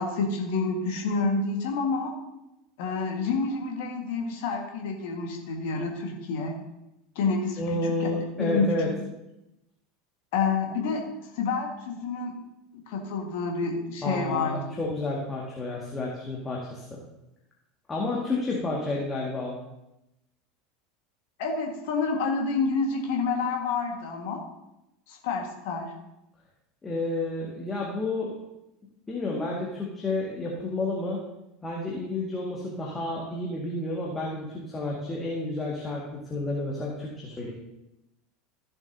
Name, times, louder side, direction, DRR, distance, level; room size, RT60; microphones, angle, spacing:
voice 1, 0.0-2.1 2.8-6.6 7.1-8.1 8.4-8.7 10.3-11.0 11.3-12.3 12.9-14.6 21.4-24.4 25.1-25.9, left 4 dB, 55° left, 1 dB, 1.7 m, -28 dB
voice 2, 7.6-8.9 14.0-17.0 17.9-19.6 26.8-28.4 29.1-31.2 31.6-36.0 36.3-37.5, left 2 dB, 20° left, -3 dB, 1.9 m, -30 dB
14.5 x 7.1 x 2.8 m, 0.90 s
figure-of-eight pair, 75°, 0 cm